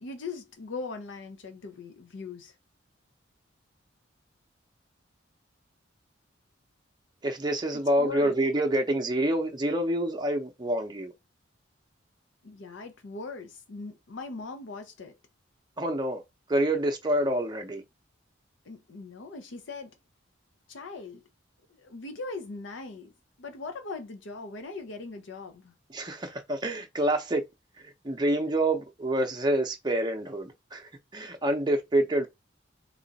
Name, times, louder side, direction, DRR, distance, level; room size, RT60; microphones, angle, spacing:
voice 1, 0.0-2.5 8.0-8.3 12.4-15.2 18.6-20.0 20.7-21.2 21.7-23.1 23.4-25.7, left 3 dB, 75° left, 0.6 m, -40 dB
voice 2, 7.2-11.1 15.8-16.2 16.5-17.8 25.9-27.4 28.0-32.3, right 1 dB, 20° right, 0.6 m, -27 dB
3.0 x 2.4 x 3.9 m
head